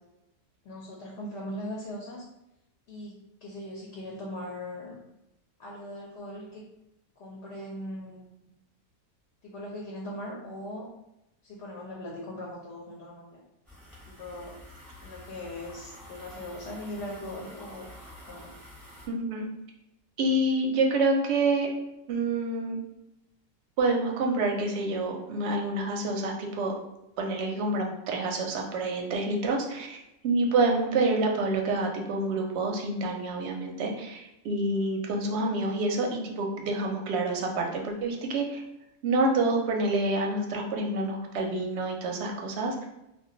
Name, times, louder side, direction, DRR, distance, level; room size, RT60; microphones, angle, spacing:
voice 1, 0.6-2.2 2.9-5.0 5.6-6.6 7.2-8.4 9.4-10.9 11.4-13.4 14.1-14.6 15.0-17.9 18.3-18.5, left 1 dB, 60° left, -2 dB, 0.8 m, -39 dB
sound 1, 13.7-19.1, left 1 dB, ahead, 0.5 m, -48 dB
voice 2, 19.1-19.5 20.2-21.7 22.1-22.8 23.8-26.7 27.2-30.0 30.2-38.6 39.0-42.9, right 2 dB, 65° right, 1 dB, 0.7 m, -27 dB
2.2 x 2.2 x 3.7 m, 0.89 s
omnidirectional pair, 1.4 m